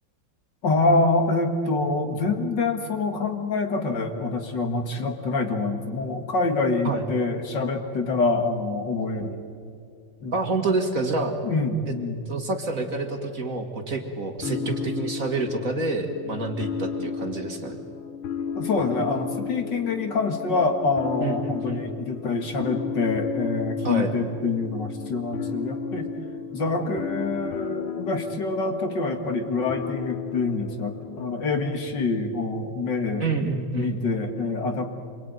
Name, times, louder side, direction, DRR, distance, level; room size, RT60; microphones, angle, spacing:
voice 1, 0.6-9.4 10.2-10.3 11.4-12.2 14.4-14.8 18.6-26.1 26.5-33.2 33.7-34.8, left 3 dB, 55° left, 6 dB, 2.4 m, -26 dB
voice 2, 10.3-11.4 11.9-12.0 12.3-17.8 21.2-21.8 23.8-24.1 33.2-34.0, right 3 dB, 40° right, 5 dB, 2.1 m, -28 dB
sound 1, 14.4-31.9, left 6 dB, 75° left, 1.9 m, -34 dB
27.0 x 22.5 x 9.4 m, 2.3 s
omnidirectional pair, 2.3 m